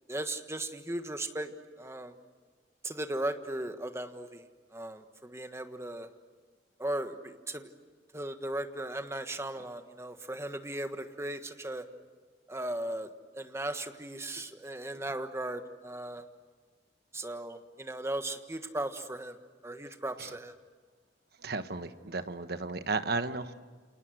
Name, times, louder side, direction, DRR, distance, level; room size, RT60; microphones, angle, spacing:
voice 1, 0.1-1.5 1.8-2.1 2.8-4.4 4.7-6.1 6.8-7.7 8.1-11.8 12.5-13.1 13.3-16.2 17.1-19.3 19.6-20.5, right 1 dB, 15° right, 7 dB, 1.5 m, -37 dB
voice 2, 21.4-23.5, right 3 dB, 60° right, 10 dB, 1.2 m, -34 dB
28.5 x 28.5 x 6.4 m, 1.5 s
head